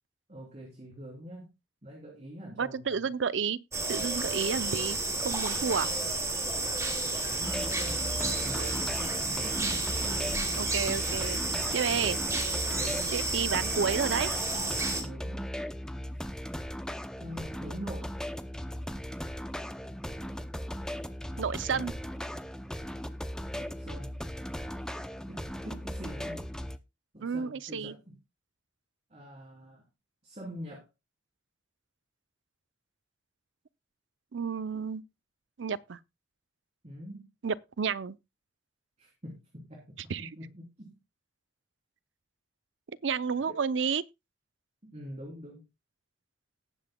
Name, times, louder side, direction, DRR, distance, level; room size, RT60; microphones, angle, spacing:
voice 1, 0.3-1.5 1.8-3.0 7.2-10.6 11.5-11.7 12.7-13.1 14.9-15.5 17.2-18.1 21.7-21.9 23.5-24.1 25.3-26.5 27.1-28.1 29.1-29.8 30.2-30.9 36.8-37.3 39.0-40.9 43.5-43.6 44.8-45.6, equal, 35° right, 3.3 m, -44 dB
voice 2, 2.6-3.6 3.9-5.0 5.2-5.9 10.6-11.4 11.7-12.2 13.1-14.3 21.4-21.9 27.2-27.9 34.3-35.0 35.6-36.0 37.4-38.2 40.1-40.3 43.0-44.0, right 6 dB, 80° right, 0.6 m, -31 dB
sound 1, 3.7-15.0, right 2 dB, 15° right, 2.8 m, -31 dB
sound 2, 7.4-26.8, equal, 5° left, 0.5 m, -38 dB
19.0 x 7.7 x 2.2 m
head